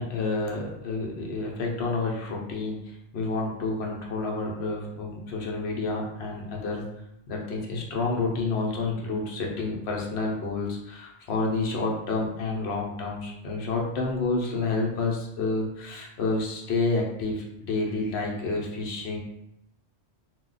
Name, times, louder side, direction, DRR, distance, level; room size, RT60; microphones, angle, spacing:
voice 1, 0.0-6.8 7.3-19.2, left 3 dB, 70° left, -1 dB, 0.9 m, -29 dB
2.4 x 2.1 x 3.8 m, 0.82 s
omnidirectional pair, 1.2 m